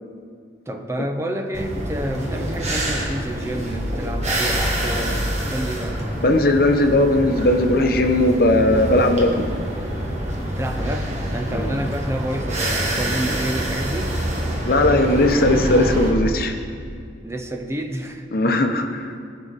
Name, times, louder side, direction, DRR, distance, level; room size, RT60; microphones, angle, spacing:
voice 1, 0.7-5.2 5.5-6.0 10.4-14.2 17.2-18.3, right 1 dB, 15° right, 5 dB, 0.6 m, -29 dB
sound 1, 1.5-16.1, right 1 dB, 40° right, 1.7 m, -26 dB
voice 2, 6.2-9.5 11.5-11.7 14.6-16.6 18.3-19.1, left 1 dB, 55° left, 5 dB, 0.9 m, -18 dB
18.5 x 6.5 x 4.1 m, 2.2 s
head